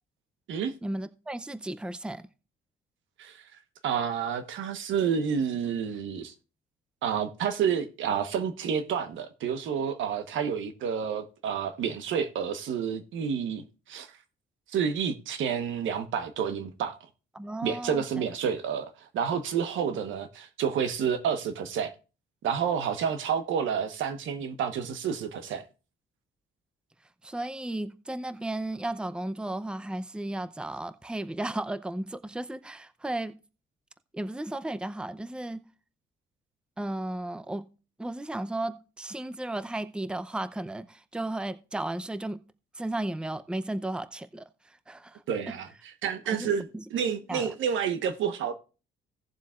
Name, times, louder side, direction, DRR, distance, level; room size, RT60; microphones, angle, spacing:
voice 1, 0.8-2.2 17.3-18.0 27.2-33.4 34.1-35.6 36.8-37.7 38.0-42.4 42.8-44.4 44.9-45.2 45.5-45.6 46.3-46.8 47.3-47.5, right 1 dB, 5° right, 0.6 m, -34 dB
voice 2, 3.8-6.3 7.0-14.1 14.7-17.0 17.6-21.9 22.4-25.7 45.3-48.5, right 7 dB, 80° right, 1.2 m, -29 dB
17.0 x 7.3 x 2.5 m
cardioid pair, 90°, 20 cm